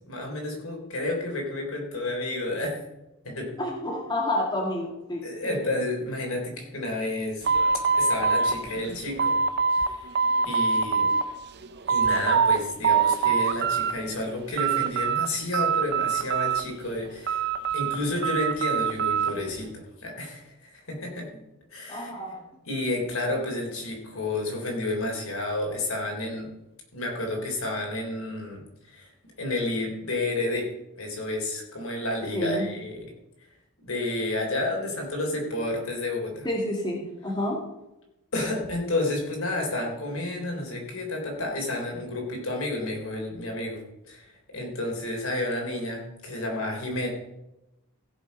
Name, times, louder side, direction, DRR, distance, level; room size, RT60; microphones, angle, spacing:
voice 1, 0.1-2.8 3.2-3.5 5.2-7.5 8.0-9.4 9.7-10.0 10.4-11.1 11.9-21.3 21.7-22.1 22.7-26.5 26.9-29.1 29.4-30.7 31.0-33.0 33.8-36.5 38.3-47.1, left 2 dB, 70° left, 0 dB, 3.8 m, -31 dB
voice 2, 3.6-5.6 21.9-22.4 32.3-32.6 36.4-37.6, left 1 dB, 20° left, -1 dB, 2.0 m, -29 dB
sound 1, 7.4-9.9 10.2-11.2 11.6-12.6 12.8-13.9 14.3-15.3 15.5-16.8 17.3-19.3, right 5 dB, 50° right, 0.8 m, -24 dB
16.5 x 7.1 x 5.4 m, 0.93 s
head